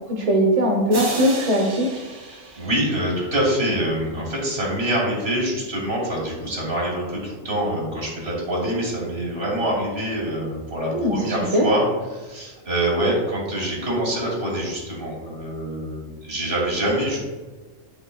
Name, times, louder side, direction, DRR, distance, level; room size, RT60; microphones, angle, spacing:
voice 1, 0.1-1.9 10.9-11.6, equal, 35° right, 0 dB, 0.9 m, -20 dB
sound 1, 0.9-3.6, right 3 dB, 90° right, 1.9 m, -34 dB
voice 2, 2.3-17.2, right 1 dB, 50° right, -3 dB, 2.9 m, -25 dB
10.5 x 6.2 x 2.3 m, 1.3 s
omnidirectional pair, 1.4 m